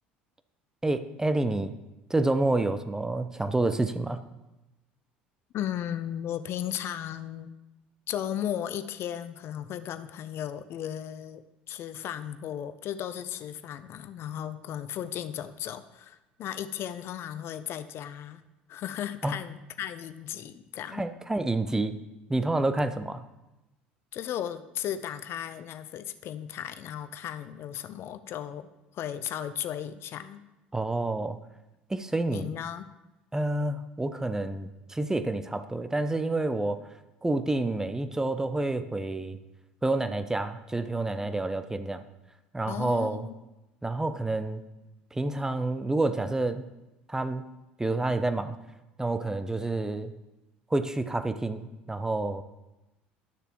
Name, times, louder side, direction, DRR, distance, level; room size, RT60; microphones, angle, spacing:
voice 1, 0.8-1.7 2.1-4.2 19.2-19.4 20.9-21.9 22.3-23.2 30.7-31.4 31.9-32.5 33.3-36.8 37.2-39.4 39.8-42.0 42.5-43.3 43.8-44.6 45.1-46.6 47.1-47.4 47.8-48.6 49.0-50.1 50.7-52.4, right 2 dB, 10° right, 10 dB, 0.6 m, -28 dB
voice 2, 5.5-7.5 8.1-11.4 11.7-18.4 18.7-21.1 24.1-28.7 28.9-30.4 32.3-32.9 42.7-43.3, left 10 dB, 50° left, 12 dB, 0.6 m, -35 dB
12.0 x 6.6 x 3.1 m, 1.0 s
hypercardioid pair, 65°, 5 cm